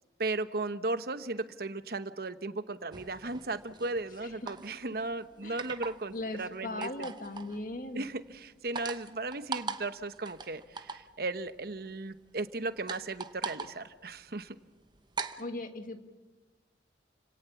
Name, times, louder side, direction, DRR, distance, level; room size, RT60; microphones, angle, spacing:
voice 1, 0.2-7.1 7.9-14.6, right 2 dB, 60° right, 12 dB, 1.0 m, -36 dB
sound 1, 2.9-15.4, right 4 dB, 25° right, 0.9 m, -42 dB
voice 2, 6.1-8.1 15.4-16.0, left 2 dB, 50° left, 7 dB, 1.7 m, -38 dB
29.5 x 17.5 x 7.1 m, 1.2 s
head